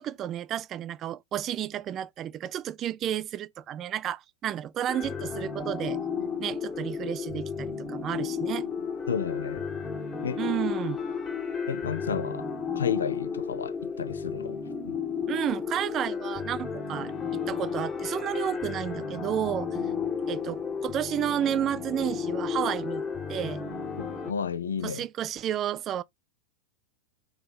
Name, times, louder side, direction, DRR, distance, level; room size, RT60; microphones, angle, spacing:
voice 1, 0.0-6.0 6.4-8.6 10.4-11.0 15.3-19.7 20.3-23.0 23.3-23.6 24.8-26.0, right 10 dB, 30° right, 0.3 m, -31 dB
sound 1, 4.9-24.3, left 6 dB, 15° left, 1.0 m, -33 dB
voice 2, 9.1-9.7 10.2-10.4 11.7-12.5 12.8-14.6 14.8-15.0 24.0-25.0, left 7 dB, 70° left, 0.4 m, -32 dB
3.3 x 3.2 x 4.2 m
figure-of-eight pair, 90°, 0 cm